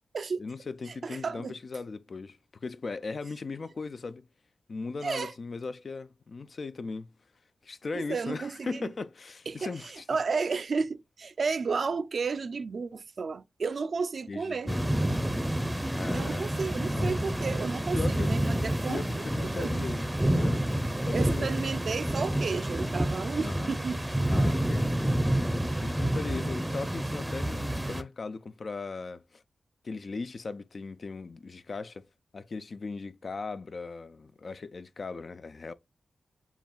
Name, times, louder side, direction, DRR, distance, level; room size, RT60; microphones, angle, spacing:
voice 1, 0.4-4.2 4.7-7.1 7.6-10.1 14.3-15.1 15.9-16.6 16.9-17.2 17.9-18.3 18.9-20.1 20.3-20.7 21.0-21.5 23.4-23.8 24.3-25.4 25.8-29.4 29.8-32.0 32.3-35.7, left 4 dB, 60° left, 0.4 m, -38 dB
voice 2, 1.0-1.5 5.0-5.3 7.9-8.8 9.5-14.7 16.1-19.7 21.1-24.0, right 4 dB, 65° right, 0.4 m, -32 dB
sound 1, 14.7-28.0, right 1 dB, 10° right, 0.6 m, -29 dB
7.0 x 2.4 x 2.3 m
cardioid pair, 45°, 0 cm